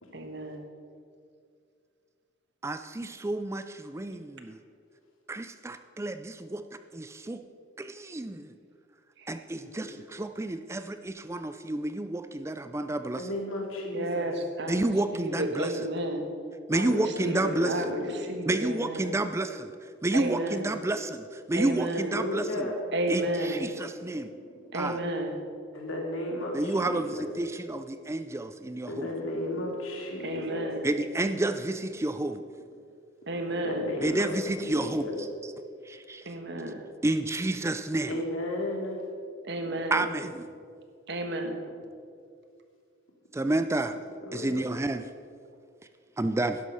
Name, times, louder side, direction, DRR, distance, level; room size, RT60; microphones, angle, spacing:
voice 1, 0.1-0.6 9.2-9.4 13.9-16.2 16.7-19.1 20.1-20.8 21.5-22.2 22.9-23.7 24.7-25.4 30.2-30.9 33.3-33.9 36.2-36.8 39.4-40.1 41.1-41.6, right 1 dB, 55° right, 5 dB, 1.4 m, -32 dB
voice 2, 2.6-4.6 5.3-6.6 6.9-7.4 7.8-8.5 9.3-13.2 14.7-15.7 16.7-17.8 18.5-22.6 23.1-24.3 24.7-25.0 26.5-29.1 30.8-32.4 34.0-35.1 35.9-36.3 37.0-38.1 39.9-40.5 43.3-44.0 44.3-45.0 46.2-46.6, right 2 dB, 15° right, 10 dB, 0.4 m, -30 dB
voice 3, 9.5-10.0 13.2-14.3 16.8-18.3 22.1-22.8 24.3-24.6 25.7-27.3 28.9-30.7 33.5-34.3 34.6-35.1 38.1-39.0 44.2-44.7, left 1 dB, 90° left, 0 dB, 2.8 m, -34 dB
11.5 x 11.0 x 5.6 m, 2.3 s
head